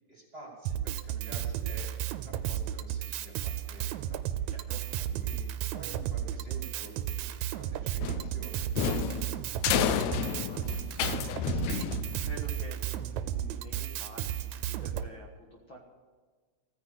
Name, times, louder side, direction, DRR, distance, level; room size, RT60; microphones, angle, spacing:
voice 1, 0.1-1.9 2.2-4.2 5.0-8.7, right 2 dB, 20° right, -1 dB, 2.7 m, -49 dB
Drum kit, 0.6-15.1, right 11 dB, 85° right, 2.0 m, -34 dB
voice 2, 4.5-4.8 9.7-15.8, equal, 45° left, -1 dB, 2.1 m, -47 dB
sound 1, 8.0-12.5, left 10 dB, 75° left, 1.9 m, -31 dB
15.5 x 9.8 x 8.1 m, 1.4 s
omnidirectional pair, 3.4 m